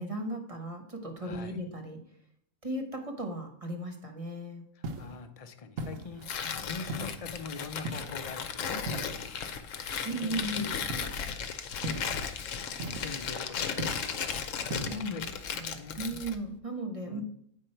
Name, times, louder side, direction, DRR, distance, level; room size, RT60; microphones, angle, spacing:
voice 1, 0.0-2.0 2.6-4.6 10.0-10.7 14.9-15.2 15.7-17.2, right 1 dB, 25° right, 4 dB, 1.1 m, -36 dB
voice 2, 1.2-1.6 4.7-6.3 6.6-9.7 10.0-10.7 11.8-12.1 12.5-12.6 13.0-16.0 17.0-17.2, left 4 dB, 45° left, 8 dB, 0.5 m, -44 dB
sound 1, 4.8-5.2 5.8-6.3 6.9-7.3 7.9-8.3 8.9-9.4 10.9-11.3 11.8-12.3 12.8-13.3 13.8-14.2 14.7-15.1, right 2 dB, 70° right, 1.3 m, -38 dB
Tearing, 6.2-16.4, left 7 dB, 70° left, 1.0 m, -36 dB
8.4 x 5.2 x 4.4 m, 0.69 s
omnidirectional pair, 1.4 m